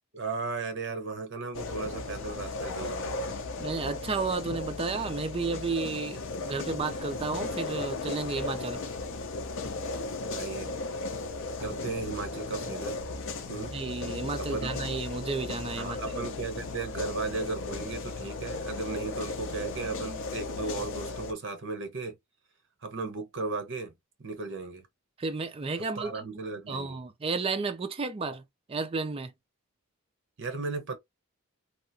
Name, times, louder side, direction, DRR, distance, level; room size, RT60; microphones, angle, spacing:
voice 1, 0.1-3.3 10.3-10.7 11.6-13.0 13.5-13.7 14.4-14.7 15.8-22.2 22.8-23.9 24.2-24.9 25.8-27.0 30.4-31.0, right 3 dB, 55° right, 0.9 m, -36 dB
sound 1, 1.5-21.3, left 3 dB, 60° left, 0.6 m, -36 dB
voice 2, 3.6-8.8 13.7-16.0 25.2-26.3 26.7-28.4 28.7-29.3, right 4 dB, 25° right, 0.4 m, -32 dB
2.9 x 2.3 x 2.6 m
head